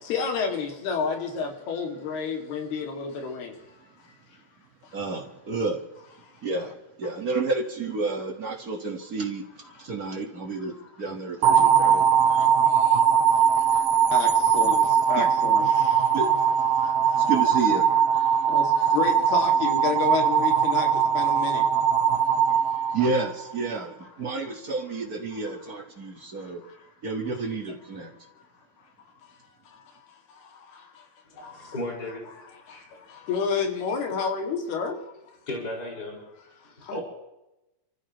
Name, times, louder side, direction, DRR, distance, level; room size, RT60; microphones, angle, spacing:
voice 1, 0.1-3.5 14.1-14.3 14.5-14.8 15.1-15.7 18.5-18.6 18.9-20.9 21.1-21.6 33.3-35.0 36.9-37.0, left 5 dB, 80° left, 3 dB, 4.4 m, -29 dB
voice 2, 4.9-5.8 6.4-6.7 7.0-13.0 13.5-13.8 15.2-15.3 16.1-16.3 17.2-17.9 22.9-26.6 27.0-28.1, right 3 dB, 55° right, 2 dB, 1.0 m, -30 dB
sound 1, 11.4-23.6, right 8 dB, 80° right, 2.6 m, -21 dB
voice 3, 31.3-32.2 32.7-32.9 35.5-36.2 36.6-37.0, left 1 dB, 25° left, -2 dB, 5.9 m, -35 dB
30.0 x 15.0 x 3.1 m, 0.96 s
omnidirectional pair, 4.5 m